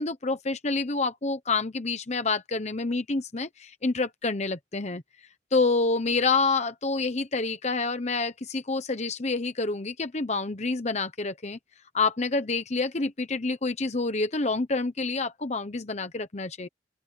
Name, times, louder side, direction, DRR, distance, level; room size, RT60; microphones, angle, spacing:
voice 1, 0.0-5.0 5.5-11.6 11.9-16.7, left 3 dB, 40° left, 1.0 m, -28 dB
open air
head